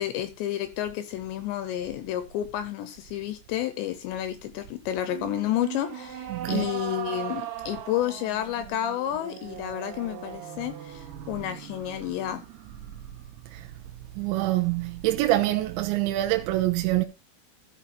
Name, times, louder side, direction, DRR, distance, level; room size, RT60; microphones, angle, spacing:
voice 1, 0.0-12.4, left 12 dB, 75° left, 2.8 m, -30 dB
sound 1, 5.1-14.4, right 11 dB, 65° right, 3.4 m, -40 dB
voice 2, 6.3-6.7 13.5-13.7 14.2-17.0, right 16 dB, 80° right, 3.0 m, -25 dB
14.5 x 5.6 x 4.2 m
omnidirectional pair, 5.7 m